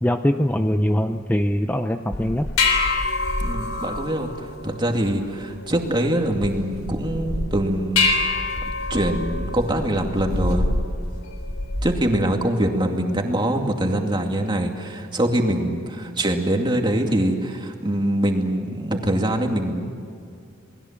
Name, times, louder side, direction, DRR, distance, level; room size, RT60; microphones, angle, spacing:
voice 1, 0.0-2.5, equal, 10° left, 7 dB, 0.6 m, -22 dB
sound 1, 2.1-12.1, left 3 dB, 85° left, 3.6 m, -26 dB
voice 2, 3.4-8.5 8.9-10.7 11.8-19.8, right 1 dB, 20° right, 3 dB, 2.4 m, -23 dB
28.5 x 20.5 x 7.4 m, 2.4 s
head